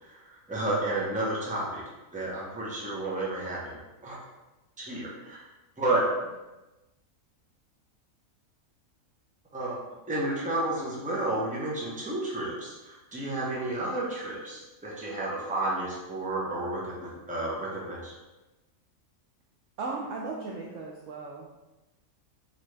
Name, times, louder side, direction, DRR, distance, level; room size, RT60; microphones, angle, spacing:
voice 1, 0.0-1.8 2.1-4.1 4.8-5.4 5.8-6.1 9.5-9.8 10.1-18.1, right 2 dB, 5° right, -5 dB, 0.7 m, -31 dB
voice 2, 19.8-21.5, right 3 dB, 70° right, -2 dB, 0.8 m, -36 dB
4.0 x 3.1 x 3.2 m, 1.1 s
omnidirectional pair, 1.5 m